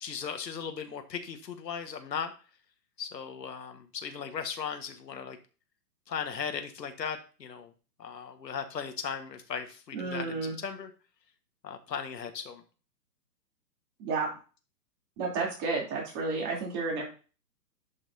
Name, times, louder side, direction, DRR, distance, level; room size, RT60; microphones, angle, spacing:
voice 1, 0.0-2.3 3.0-5.4 6.1-7.7 8.0-10.9 11.6-12.6, left 7 dB, 80° left, 6 dB, 1.7 m, -37 dB
voice 2, 9.9-10.5 14.0-14.3 15.2-17.0, right 4 dB, 25° right, -2 dB, 3.4 m, -31 dB
11.0 x 6.0 x 2.8 m, 0.35 s
hypercardioid pair, 150°, 49 cm